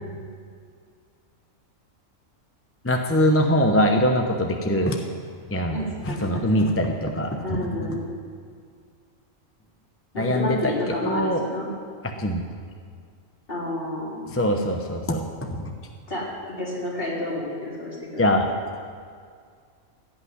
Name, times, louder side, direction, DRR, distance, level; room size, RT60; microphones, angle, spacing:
voice 1, 2.8-5.0 5.5-5.8 6.1-8.0 10.2-11.4 12.2-12.4 14.3-15.7 18.2-18.5, equal, 15° left, 3 dB, 0.7 m, -23 dB
voice 2, 5.7-6.8 7.4-8.0 10.1-11.7 13.5-14.3 16.1-18.3, left 1 dB, 45° left, -6 dB, 3.8 m, -30 dB
17.0 x 6.0 x 9.6 m, 2.1 s
omnidirectional pair, 1.4 m